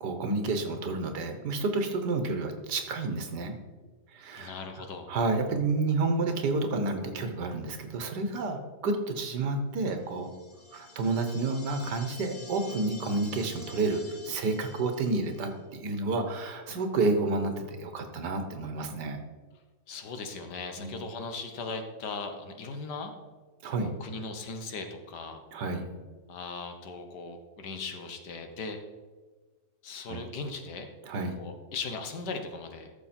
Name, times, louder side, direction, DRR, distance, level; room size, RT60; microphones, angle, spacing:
voice 1, 0.0-3.6 4.1-4.5 5.1-10.3 10.7-19.2 20.8-21.0 23.6-23.9 25.5-25.9 30.1-30.2 31.1-31.4, right 3 dB, 80° right, 6 dB, 1.8 m, -30 dB
voice 2, 4.4-5.1 19.9-23.1 23.8-25.4 26.3-28.8 29.8-30.9 31.4-32.9, left 4 dB, 80° left, 6 dB, 1.7 m, -38 dB
sound 1, 10.1-15.5, left 3 dB, 45° left, 0.3 m, -48 dB
13.5 x 6.5 x 4.4 m, 1.3 s
omnidirectional pair, 1.8 m